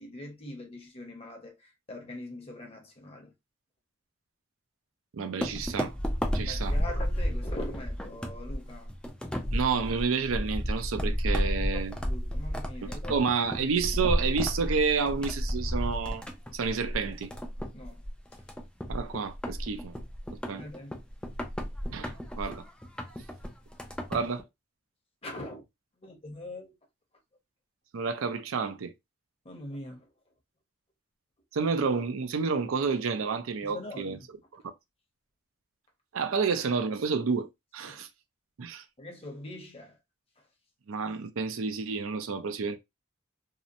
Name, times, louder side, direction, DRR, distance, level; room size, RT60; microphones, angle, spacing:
voice 1, 0.0-3.3 6.4-8.9 11.3-11.5 11.7-13.2 17.7-18.0 20.6-21.0 25.2-25.6 26.0-26.7 29.4-30.1 33.6-34.3 37.8-38.0 39.0-39.9, left 1 dB, 30° left, 0.8 m, -42 dB
voice 2, 5.1-5.9 6.3-6.8 9.5-12.0 12.8-16.2 16.5-17.3 18.9-19.9 20.3-20.7 21.9-22.6 24.1-24.4 27.9-28.9 31.5-34.2 34.5-34.6 36.1-38.1 38.6-38.8 40.9-42.8, right 5 dB, 80° right, 0.5 m, -30 dB
sound 1, 5.4-24.4, equal, 5° left, 0.3 m, -32 dB
2.8 x 2.0 x 2.5 m
head